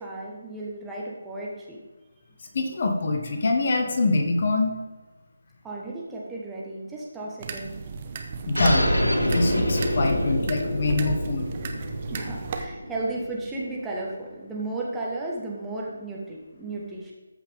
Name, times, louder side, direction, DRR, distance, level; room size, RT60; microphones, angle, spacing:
voice 1, 0.0-1.8 5.6-8.1 12.1-17.1, right 2 dB, 5° right, -4 dB, 1.4 m, -34 dB
voice 2, 2.5-4.8 8.5-8.9 9.2-11.5, left 2 dB, 45° left, 4 dB, 1.3 m, -24 dB
sound 1, 7.4-12.7, right 4 dB, 30° right, 0.9 m, -35 dB
sound 2, 8.6-13.6, equal, 85° left, 2.4 m, -26 dB
13.5 x 5.7 x 3.6 m, 1.2 s
figure-of-eight pair, 150°, 0 cm